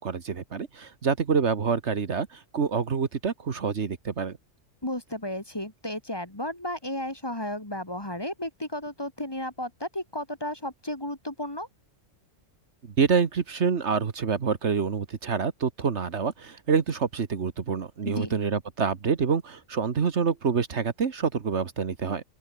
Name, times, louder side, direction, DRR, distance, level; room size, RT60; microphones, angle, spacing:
voice 1, 0.0-4.4 13.0-22.2, right 6 dB, 60° right, 1.6 m, -27 dB
voice 2, 4.8-11.7 18.1-18.3, left 1 dB, 20° left, 2.0 m, -33 dB
open air
omnidirectional pair, 1.3 m